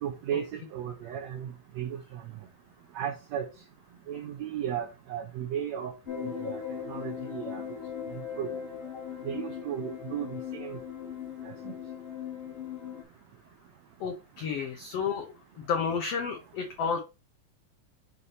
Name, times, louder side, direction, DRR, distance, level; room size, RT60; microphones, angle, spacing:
voice 1, 0.0-2.2 3.0-3.5 4.1-5.9 6.2-6.6 6.9-7.6 8.4-8.6 9.3-10.8 11.5-11.7, right 9 dB, 70° right, 1.7 m, -35 dB
sound 1, 6.0-13.0, left 8 dB, 40° left, 0.8 m, -38 dB
voice 2, 14.0-15.3 15.6-17.0, left 6 dB, 80° left, 1.4 m, -31 dB
7.4 x 4.1 x 3.3 m
omnidirectional pair, 4.1 m